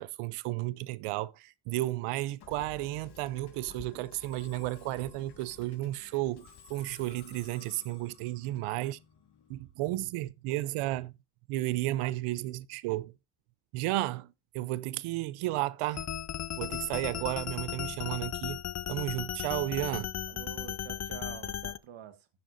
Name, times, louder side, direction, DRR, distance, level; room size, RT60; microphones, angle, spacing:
voice 1, 0.0-9.0 9.5-11.1 11.5-13.1 13.7-16.0 16.6-18.6 18.9-20.1, right 17 dB, 90° right, 0.6 m, -33 dB
Musical instrument, 2.4-9.7, left 7 dB, 50° left, 1.9 m, -54 dB
sound 1, 15.9-21.8, left 10 dB, 35° left, 0.5 m, -36 dB
voice 2, 20.3-22.3, right 10 dB, 65° right, 1.5 m, -47 dB
12.5 x 9.5 x 2.5 m
cardioid pair, 85°, 50 cm